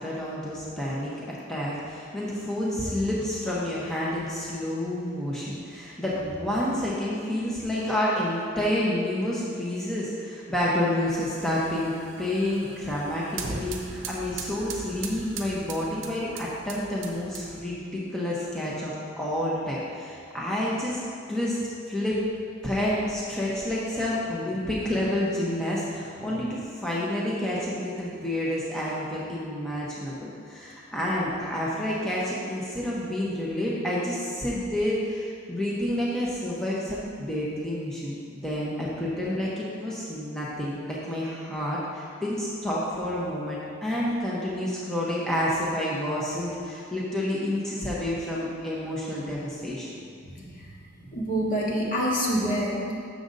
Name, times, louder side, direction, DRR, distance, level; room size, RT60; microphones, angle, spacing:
voice 1, 0.0-21.0 21.3-21.6 21.9-22.2 22.6-49.9, left 1 dB, 5° left, -7 dB, 0.7 m, -29 dB
sound 1, 11.1-17.8, right 4 dB, 65° right, 0.7 m, -40 dB
voice 2, 50.3-50.7 51.0-52.9, equal, 40° left, -4 dB, 1.3 m, -27 dB
6.7 x 6.3 x 3.9 m, 2.4 s
head